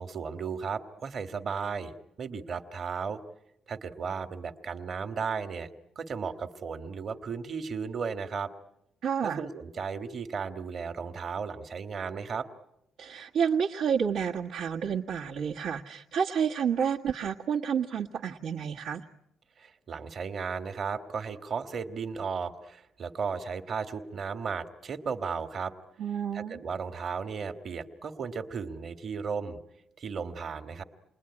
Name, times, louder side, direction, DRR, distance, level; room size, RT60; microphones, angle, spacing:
voice 1, 0.0-3.2 3.7-5.7 6.0-8.5 9.2-12.5 19.6-25.7 26.3-29.6 30.0-30.8, right 5 dB, 50° right, 8 dB, 1.8 m, -35 dB
voice 2, 9.0-9.4 13.0-19.0 26.0-26.6, right 7 dB, 75° right, -3 dB, 1.5 m, -30 dB
28.5 x 21.0 x 9.9 m, 0.89 s
cardioid pair, 115°, 0 cm